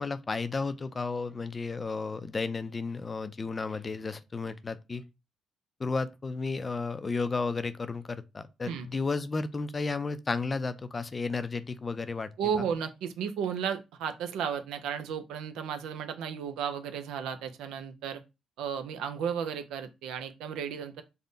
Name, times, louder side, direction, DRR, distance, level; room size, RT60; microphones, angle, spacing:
voice 1, 0.0-5.0 5.8-12.3 12.6-12.7, left 4 dB, 30° left, 0.4 m, -33 dB
voice 2, 12.4-18.2 18.6-21.0, right 7 dB, 90° right, 0.4 m, -34 dB
3.5 x 2.1 x 3.8 m
cardioid pair, 90°, 0 cm